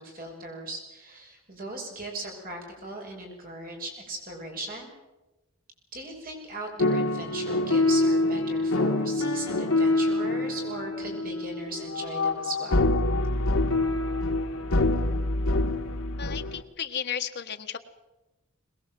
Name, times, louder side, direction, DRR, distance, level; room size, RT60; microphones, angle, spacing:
voice 1, 0.0-4.9 5.9-12.9, right 2 dB, 45° right, 1 dB, 6.1 m, -38 dB
sound 1, 6.8-16.6, left 2 dB, 75° left, 1.3 m, -25 dB
voice 2, 16.2-17.8, left 8 dB, 55° left, 6 dB, 1.5 m, -34 dB
22.5 x 20.5 x 7.7 m, 1.0 s
head